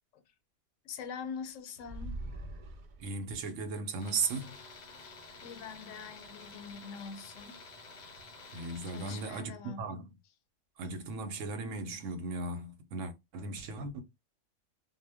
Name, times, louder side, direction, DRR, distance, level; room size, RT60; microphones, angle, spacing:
voice 1, 0.8-2.2 5.4-7.6 8.9-9.8, left 6 dB, 85° left, 1.0 m, -44 dB
sound 1, 1.8-3.4, right 1 dB, 60° right, 0.5 m, -42 dB
voice 2, 3.0-4.5 8.5-10.1 10.8-14.0, right 3 dB, 90° right, 1.0 m, -37 dB
Tools, 4.0-9.4, left 3 dB, 50° left, 0.5 m, -51 dB
2.1 x 2.1 x 3.3 m
omnidirectional pair, 1.3 m